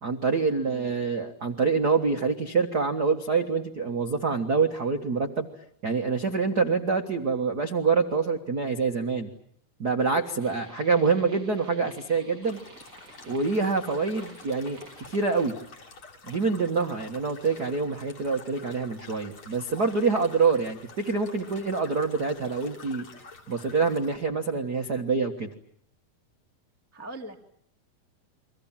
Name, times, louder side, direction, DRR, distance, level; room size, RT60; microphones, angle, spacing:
voice 1, 0.0-5.5 5.8-9.3 9.8-12.6 13.2-15.6 16.3-23.0 23.5-25.5, right 4 dB, 55° right, 5 dB, 1.0 m, -26 dB
sound 1, 10.4-15.5, right 3 dB, 25° right, 3.4 m, -51 dB
sound 2, 12.4-24.2, left 4 dB, 35° left, 3.3 m, -48 dB
voice 2, 26.9-27.5, right 1 dB, 10° left, 2 dB, 0.7 m, -41 dB
30.0 x 24.0 x 7.4 m, 0.68 s
omnidirectional pair, 4.3 m